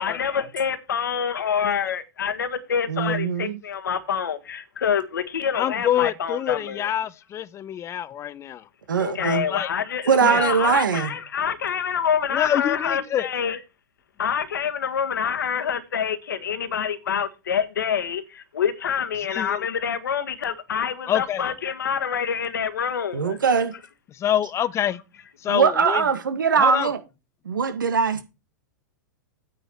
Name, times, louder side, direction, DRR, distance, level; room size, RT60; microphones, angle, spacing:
voice 1, 0.0-6.9 9.0-13.6 14.2-23.4, left 7 dB, 80° left, 1.6 m, -26 dB
voice 2, 2.9-3.6 8.9-9.5 10.1-11.1 23.1-23.7 25.5-27.0 27.4-28.2, right 6 dB, 85° right, 1.8 m, -21 dB
voice 3, 5.5-8.6 9.5-9.7 10.2-10.3 12.3-13.3 19.3-19.7 21.1-21.4 24.1-25.0 25.4-26.0 26.5-26.9, left 11 dB, 25° left, 0.8 m, -26 dB
9.1 x 8.0 x 4.5 m
hypercardioid pair, 110°, 11 cm